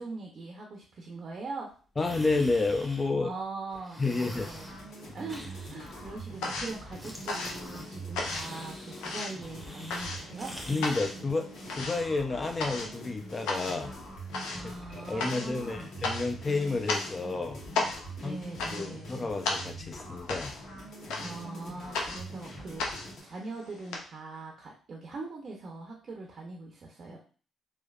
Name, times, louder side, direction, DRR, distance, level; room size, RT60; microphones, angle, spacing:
voice 1, 0.0-1.7 3.1-4.7 5.1-10.5 14.5-15.9 18.2-19.1 21.2-27.2, right 3 dB, 55° right, 0 dB, 0.6 m, -41 dB
voice 2, 2.0-3.3 4.0-4.5 10.7-13.9 14.6-17.6 18.2-18.4 18.7-20.5, left 3 dB, 35° left, 5 dB, 0.5 m, -30 dB
sound 1, 2.0-3.4 3.7-4.8 5.3-6.6 6.9-7.9 8.2-11.0, equal, ahead, 0.9 m, -46 dB
sound 2, 4.3-23.2, right 1 dB, 65° left, 1.1 m, -44 dB
sound 3, 4.6-5.4 5.7-24.0, left 3 dB, 85° left, 0.5 m, -36 dB
3.2 x 2.0 x 2.4 m, 0.40 s
supercardioid pair, 55°, 0 cm